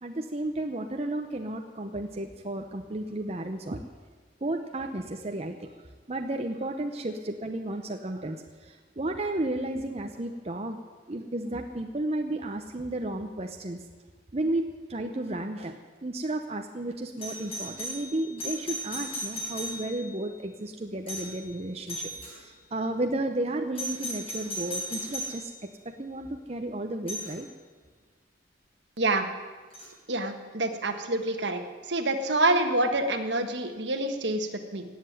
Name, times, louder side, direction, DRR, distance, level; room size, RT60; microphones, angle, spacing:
voice 1, 0.0-3.9 4.4-10.8 11.1-13.8 14.3-22.1 22.4-25.5 25.8-27.5, right 1 dB, 35° right, 4 dB, 0.8 m, -33 dB
Doorbell, 17.2-20.2 21.1-21.4 21.9-22.4 23.7-25.4 27.1-27.3 29.7-29.9, equal, 30° left, 4.7 m, -36 dB
voice 2, 29.0-29.3 30.1-31.6 31.9-34.8, right 2 dB, 65° right, 6 dB, 1.5 m, -27 dB
17.5 x 7.8 x 9.5 m, 1.4 s
head